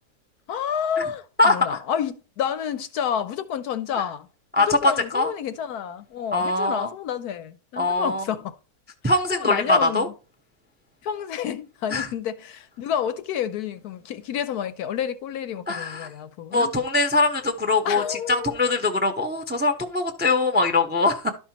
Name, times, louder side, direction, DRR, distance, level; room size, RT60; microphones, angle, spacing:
voice 1, 0.5-4.3 4.6-8.5 9.0-10.0 11.0-16.7 17.8-18.5, left 8 dB, 70° left, 1.0 m, -29 dB
voice 2, 1.4-1.8 3.9-4.0 4.6-5.3 6.3-6.9 7.8-8.2 9.0-10.1 11.9-12.1 15.7-16.1 16.5-21.3, left 2 dB, 15° right, 0.4 m, -22 dB
12.0 x 5.5 x 2.9 m
omnidirectional pair, 1.9 m